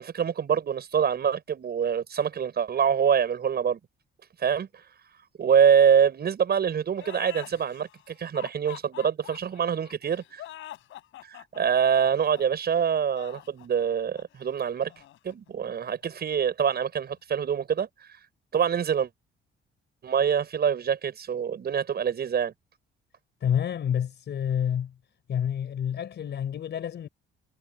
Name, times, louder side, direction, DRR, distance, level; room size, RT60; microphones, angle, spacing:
voice 1, 0.0-3.8 4.4-4.8 5.4-10.4 11.3-14.9 15.2-17.9 18.5-19.1 20.0-22.5, right 7 dB, 55° right, 6.7 m, -25 dB
sound 1, 6.9-16.2, left 13 dB, 80° left, 6.5 m, -46 dB
voice 2, 23.4-24.9 25.3-27.1, left 9 dB, 60° left, 5.2 m, -28 dB
cardioid pair, 90°, 20 cm